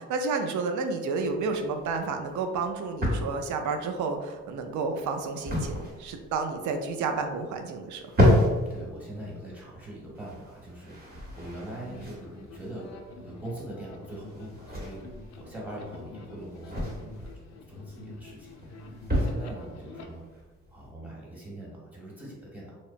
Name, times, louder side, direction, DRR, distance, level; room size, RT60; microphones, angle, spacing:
voice 1, 0.0-8.1, right 4 dB, 75° right, 5 dB, 0.4 m, -31 dB
sound 1, 1.2-20.9, left 1 dB, 30° right, 0.9 m, -32 dB
voice 2, 8.3-12.9 13.2-17.3 17.7-20.4 20.7-22.8, right 1 dB, 5° right, -5 dB, 1.0 m, -42 dB
sound 2, 11.1-20.0, left 3 dB, 65° left, 0.4 m, -48 dB
2.8 x 2.0 x 2.5 m, 1.3 s
cardioid pair, 90°, 30 cm